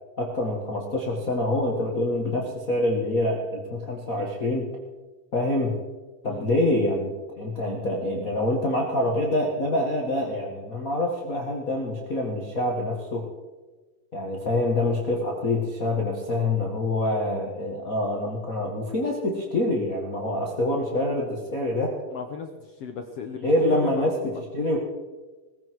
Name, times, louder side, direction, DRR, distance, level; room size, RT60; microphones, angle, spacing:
voice 1, 0.2-4.7 5.3-5.8 6.2-13.2 14.1-21.9 23.4-24.8, left 1 dB, 35° left, -2 dB, 1.6 m, -26 dB
voice 2, 22.1-22.5 22.8-24.4, left 6 dB, 65° left, 5 dB, 1.5 m, -36 dB
20.0 x 15.5 x 4.7 m, 1.3 s
omnidirectional pair, 3.9 m